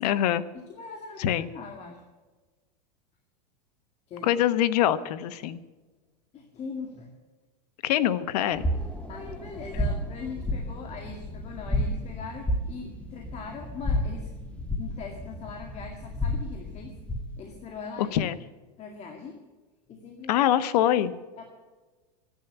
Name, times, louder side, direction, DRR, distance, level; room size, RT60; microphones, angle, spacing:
voice 1, 0.0-0.4 1.2-1.5 4.2-5.6 7.8-8.6 18.0-18.4 20.3-21.1, left 11 dB, 70° left, 14 dB, 1.1 m, -24 dB
voice 2, 0.5-2.0 4.1-4.3 5.3-5.4 6.3-7.1 8.4-8.5 9.1-14.3 14.8-16.9 17.4-18.3 18.8-19.4 19.9-20.4 21.4-21.5, left 5 dB, 30° left, 3 dB, 2.1 m, -41 dB
sound 1, 8.5-17.4, left 1 dB, 5° left, 1.6 m, -32 dB
14.0 x 10.5 x 8.1 m, 1.3 s
supercardioid pair, 135°, 21 cm